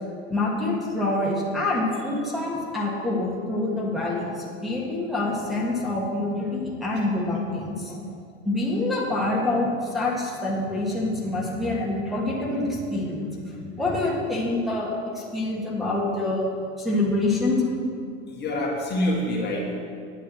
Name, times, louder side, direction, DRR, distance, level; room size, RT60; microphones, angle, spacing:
voice 1, 0.3-7.9 8.4-16.5 16.8-17.7, left 2 dB, ahead, -5 dB, 1.7 m, -26 dB
voice 2, 18.3-19.7, left 1 dB, 30° left, -2 dB, 1.6 m, -27 dB
9.3 x 6.9 x 6.4 m, 2.3 s
supercardioid pair, 125°, 35 cm